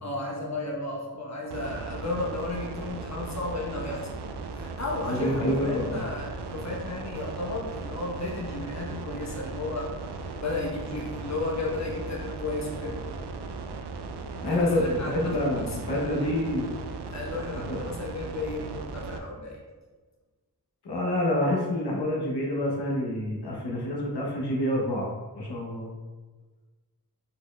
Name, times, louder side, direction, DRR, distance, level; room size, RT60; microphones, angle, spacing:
voice 1, 0.0-4.0 4.5-9.9 10.4-13.0 14.4-16.5 17.1-19.6, left 2 dB, 45° left, -2 dB, 1.1 m, -34 dB
sound 1, 1.5-19.2, right 4 dB, 90° right, 0.5 m, -37 dB
voice 2, 5.1-6.0 14.4-16.7 17.7-17.8 20.8-25.1 25.3-25.9, left 1 dB, 85° left, -3 dB, 1.0 m, -27 dB
5.3 x 4.3 x 2.3 m, 1.3 s
wide cardioid pair, 70°, 39 cm